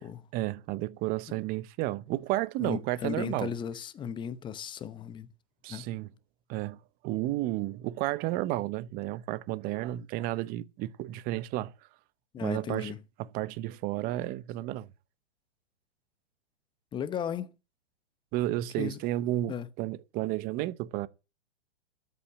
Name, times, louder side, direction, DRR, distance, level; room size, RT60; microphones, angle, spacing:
voice 1, 0.3-3.5 5.6-6.1 6.5-6.8 7.0-11.7 12.4-12.9 13.2-14.9 18.3-21.1, right 16 dB, 25° right, 0.7 m, -32 dB
voice 2, 2.6-5.3 5.7-5.9 12.3-13.0 16.9-17.5 18.8-19.0 19.5-19.7, left 8 dB, 15° left, 0.8 m, -36 dB
13.0 x 5.7 x 7.8 m
hypercardioid pair, 135°, 35 cm